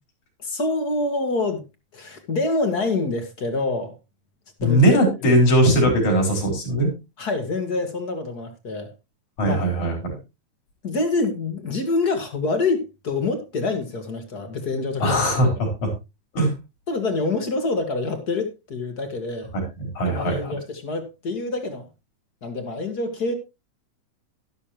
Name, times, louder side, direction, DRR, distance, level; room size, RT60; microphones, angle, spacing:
voice 1, 0.4-1.6 1.9-3.9 4.6-4.8 7.2-8.9 9.4-9.7 10.8-15.2 16.9-19.5 20.0-21.9 22.4-23.3, left 3 dB, 40° left, 1.8 m, -26 dB
voice 2, 4.6-6.9 9.4-10.1 15.0-15.9 16.3-16.5 19.5-19.6 20.0-20.5, right 1 dB, 70° left, 5.6 m, -19 dB
12.0 x 11.5 x 3.0 m
omnidirectional pair, 3.4 m